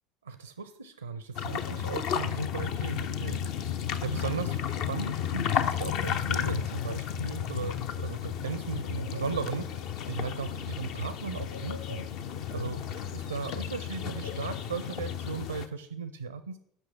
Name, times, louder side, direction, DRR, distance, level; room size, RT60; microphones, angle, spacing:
voice 1, 0.2-3.4 3.7-12.1 12.5-12.8 13.1-16.6, right 5 dB, 80° right, 12 dB, 0.5 m, -36 dB
sound 1, 1.3-15.7, left 9 dB, 55° left, 0.6 m, -33 dB
8.0 x 5.9 x 7.2 m, 0.72 s
figure-of-eight pair, 65°, 0 cm